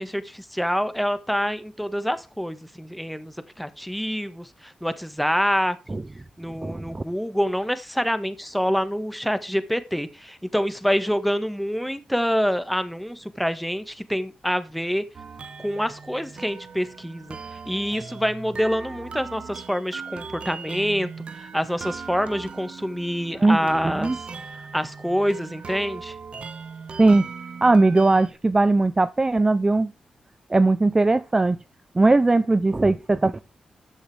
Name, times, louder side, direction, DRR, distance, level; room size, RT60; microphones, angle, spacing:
voice 1, 0.0-6.0 6.4-15.0 15.6-17.4 17.7-21.1 21.4-24.1 24.7-26.2, equal, ahead, 1.6 m, -26 dB
voice 2, 6.6-7.0 23.4-23.6 23.9-24.2 27.0-27.2 27.6-29.9 30.5-31.6 32.0-33.4, right 2 dB, 25° right, 0.6 m, -19 dB
sound 1, 15.1-28.3, right 5 dB, 55° right, 1.3 m, -39 dB
13.5 x 7.8 x 3.4 m
cardioid pair, 60°, 2 cm